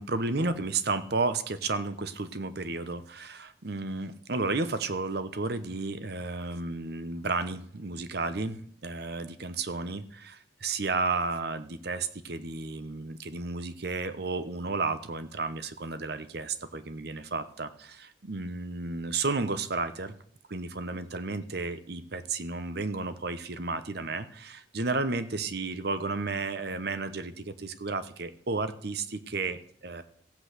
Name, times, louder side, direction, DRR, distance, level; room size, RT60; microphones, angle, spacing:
voice 1, 0.0-20.1 20.5-30.0, right 3 dB, 55° right, 12 dB, 0.9 m, -32 dB
15.0 x 8.0 x 6.6 m, 0.64 s
head